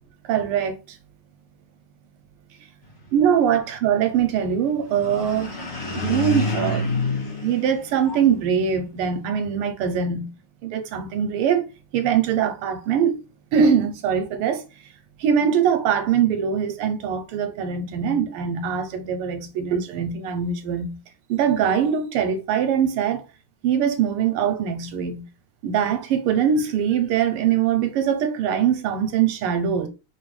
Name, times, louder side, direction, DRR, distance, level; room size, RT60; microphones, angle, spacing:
voice 1, 0.3-1.0 3.1-5.6 5.9-6.9 7.4-10.3 10.6-11.6 11.9-13.2 13.5-14.6 15.2-21.0 21.3-23.2 23.6-25.2 25.6-29.9, right 8 dB, 90° right, 1.7 m, -22 dB
sound 1, 4.9-8.5, left 2 dB, 45° left, 3.0 m, -28 dB
4.8 x 3.5 x 3.2 m
omnidirectional pair, 2.4 m